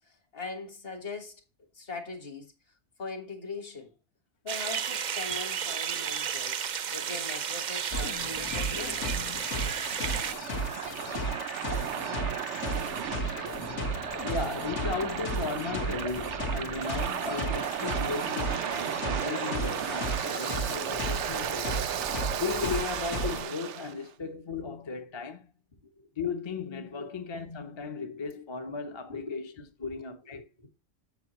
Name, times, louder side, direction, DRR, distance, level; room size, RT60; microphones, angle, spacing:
voice 1, 0.1-1.4 1.7-2.5 3.0-3.9 4.4-6.6 6.9-9.0 12.3-12.5 13.1-14.3 24.2-24.3 25.8-26.1 26.9-27.1 29.1-29.3 29.8-30.7, left 3 dB, 55° left, 1.8 m, -41 dB
sound 1, 4.5-10.3, right 8 dB, 50° right, 0.6 m, -33 dB
sound 2, 7.9-23.4, equal, 85° left, 1.8 m, -35 dB
Waves surf, 8.2-23.9, right 10 dB, 80° right, 0.9 m, -35 dB
voice 2, 14.3-21.8 22.4-25.5 26.2-30.4, left 5 dB, 30° left, 0.6 m, -36 dB
7.3 x 7.0 x 2.9 m
omnidirectional pair, 1.2 m